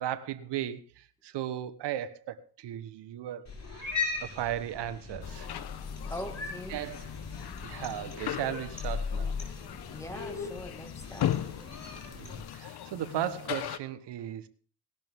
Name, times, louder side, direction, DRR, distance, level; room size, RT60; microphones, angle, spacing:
voice 1, 0.0-5.5 6.7-7.1 7.6-9.4 12.1-14.5, right 11 dB, 75° right, 1.2 m, -36 dB
Cat, 3.5-12.4, left 5 dB, 40° left, 6.4 m, -38 dB
sound 1, 5.2-13.8, left 11 dB, 65° left, 1.2 m, -38 dB
voice 2, 6.0-6.9 9.9-11.3, left 1 dB, 5° left, 1.9 m, -42 dB
19.0 x 12.0 x 3.6 m
cardioid pair, 80°, 42 cm